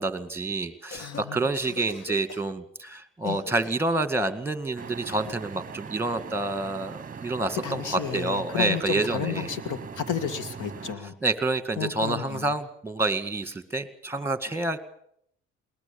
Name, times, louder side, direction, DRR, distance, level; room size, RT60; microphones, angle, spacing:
voice 1, 0.0-9.5 11.2-14.8, right 2 dB, 10° right, 11 dB, 1.9 m, -28 dB
Cough, 0.7-1.3 1.5-2.5 3.2-3.9 5.1-5.4, left 5 dB, 55° left, 1.4 m, -43 dB
voice 2, 1.0-1.4 3.2-3.4 7.6-11.1 11.8-12.5, left 8 dB, 85° left, 10 dB, 1.9 m, -32 dB
sound 1, 4.8-11.0, right 6 dB, 30° right, 0.9 m, -41 dB
21.0 x 19.5 x 7.1 m, 0.69 s
cardioid pair, 90°, 30 cm